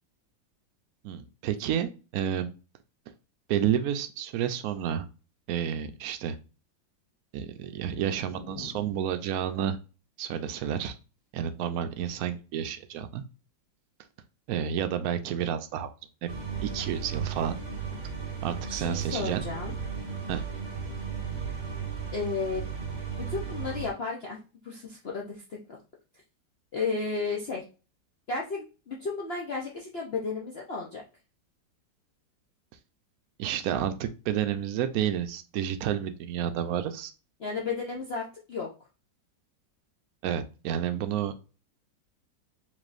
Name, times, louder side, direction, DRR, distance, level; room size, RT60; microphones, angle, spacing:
voice 1, 1.0-2.5 3.5-5.1 5.5-6.4 7.3-9.8 10.2-10.9 11.3-13.2 14.5-15.9 16.2-16.3 16.6-17.6 18.4-19.4 20.3-20.4 33.4-37.1 40.2-41.4, right 9 dB, 70° right, 9 dB, 0.8 m, -30 dB
voice 2, 8.3-8.8 17.9-18.0 18.7-19.7 22.1-22.7 23.3-24.4 24.6-25.8 26.7-27.6 28.3-31.0 37.4-38.7, left 4 dB, 60° left, -2 dB, 0.6 m, -33 dB
sound 1, 16.3-23.9, right 6 dB, 35° right, 1.3 m, -35 dB
5.0 x 3.6 x 2.5 m, 0.33 s
omnidirectional pair, 2.0 m